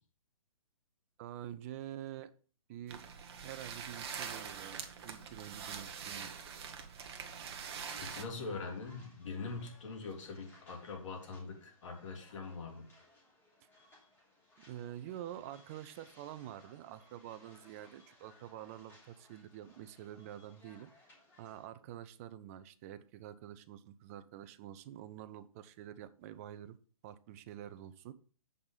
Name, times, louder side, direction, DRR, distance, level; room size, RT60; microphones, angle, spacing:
voice 1, 1.2-2.3 2.7-3.0 3.4-6.3 14.7-20.9 21.4-26.8 27.0-28.1, right 11 dB, 25° right, 0.5 m, -47 dB
sound 1, 2.9-8.2, right 6 dB, 45° right, 1.4 m, -44 dB
sound 2, 7.7-21.7, left 1 dB, 10° left, 3.2 m, -63 dB
voice 2, 8.0-12.9, left 4 dB, 55° left, 3.4 m, -43 dB
8.7 x 5.4 x 5.0 m
hypercardioid pair, 145°, 18 cm